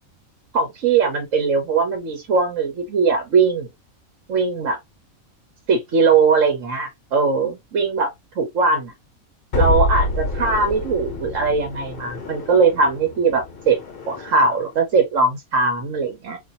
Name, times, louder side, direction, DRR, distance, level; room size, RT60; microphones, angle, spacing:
voice 1, 0.5-3.7 4.3-4.8 5.7-8.1 8.4-8.9 9.5-13.8 14.1-16.4, right 4 dB, 65° right, 1.3 m, -20 dB
sound 1, 9.5-14.6, left 2 dB, 45° left, 1.1 m, -27 dB
4.1 x 2.8 x 2.7 m
omnidirectional pair, 1.4 m